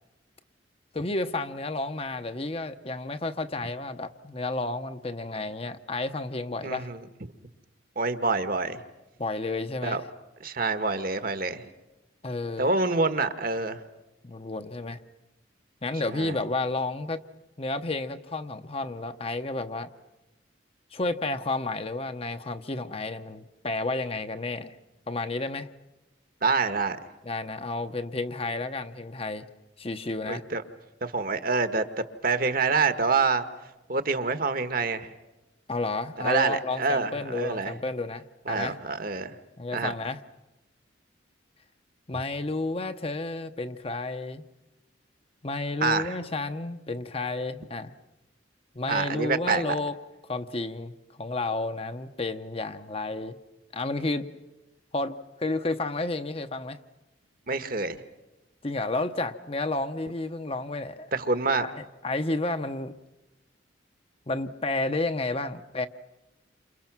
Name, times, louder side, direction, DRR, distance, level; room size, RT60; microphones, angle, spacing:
voice 1, 0.9-6.9 9.2-10.0 12.2-12.7 14.2-15.0 15.8-17.2 17.6-19.9 20.9-24.8 25.1-25.7 27.2-29.5 29.8-30.4 35.7-38.8 39.6-40.2 42.1-44.4 45.4-47.9 48.7-49.9 50.2-50.9 51.2-53.4 53.7-54.3 54.9-56.8 58.6-61.1 61.6-62.9 64.3-65.9, left 2 dB, 30° left, 9 dB, 0.9 m, -31 dB
voice 2, 6.6-7.0 7.9-8.8 9.8-10.0 10.4-11.7 12.6-13.8 16.1-16.4 26.4-27.0 30.3-30.6 31.0-31.8 32.2-33.4 33.9-35.1 36.2-37.7 38.5-39.3 39.7-39.9 45.8-46.1 48.9-49.7 57.5-58.0 61.1-61.7, right 4 dB, 50° right, 10 dB, 1.4 m, -26 dB
29.5 x 28.0 x 6.1 m, 1.0 s
head